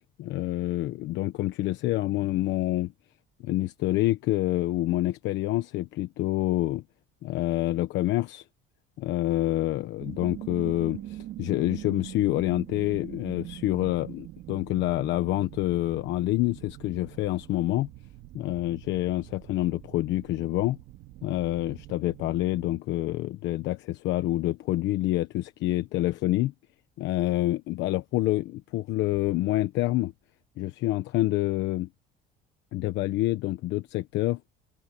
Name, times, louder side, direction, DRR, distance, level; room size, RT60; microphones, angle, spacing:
voice 1, 0.2-2.9 3.4-6.8 7.2-8.4 9.0-17.9 18.3-20.8 21.2-26.5 27.0-30.1 30.6-31.9 32.7-34.4, left 16 dB, 65° left, 1.1 m, -27 dB
sound 1, 10.0-22.8, right 14 dB, 60° right, 4.9 m, -43 dB
cardioid pair, 170°, 20 cm